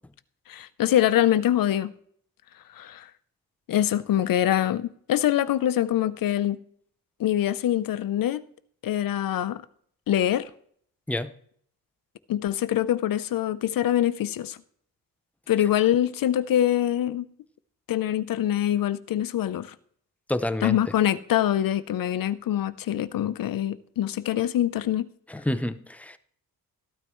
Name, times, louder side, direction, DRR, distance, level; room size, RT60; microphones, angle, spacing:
voice 1, 0.5-1.9 2.7-3.1 3.7-6.6 7.2-8.4 8.8-9.6 10.1-10.5 12.3-14.6 15.5-17.3 17.9-19.7 20.6-25.1, left 11 dB, 65° left, 0.7 m, -24 dB
voice 2, 20.3-20.8 25.3-26.2, left 1 dB, 5° left, 0.4 m, -28 dB
13.5 x 12.5 x 3.1 m
wide cardioid pair, 175°, 37 cm